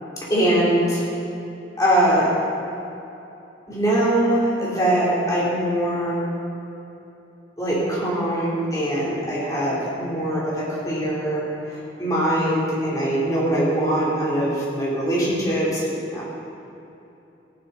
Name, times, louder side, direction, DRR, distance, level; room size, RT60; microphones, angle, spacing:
voice 1, 0.3-1.0 1.8-2.3 3.7-6.2 7.6-16.2, right 1 dB, 20° left, -7 dB, 3.0 m, -22 dB
15.0 x 10.5 x 3.9 m, 2.9 s
head